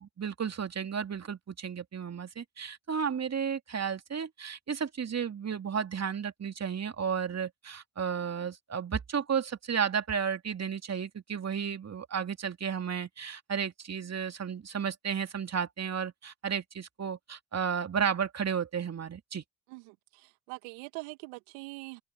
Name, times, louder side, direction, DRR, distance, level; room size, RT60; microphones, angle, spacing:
voice 1, 0.0-19.4, right 7 dB, 40° right, 2.5 m, -33 dB
voice 2, 19.7-22.0, right 27 dB, 75° right, 2.1 m, -43 dB
open air
hypercardioid pair, 45°, 42 cm